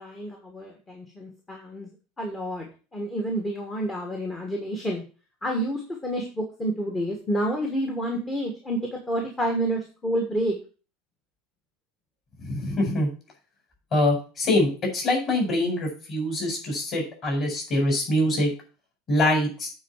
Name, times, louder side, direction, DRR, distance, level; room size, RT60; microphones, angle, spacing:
voice 1, 0.0-1.9 2.2-2.7 2.9-5.0 5.4-10.5, right 1 dB, 10° left, 0 dB, 1.5 m, -29 dB
voice 2, 12.4-13.1 13.9-18.5 19.1-19.7, left 1 dB, 25° left, 0 dB, 5.1 m, -24 dB
8.8 x 4.7 x 7.1 m, 0.35 s
cardioid pair, 170°, 0 cm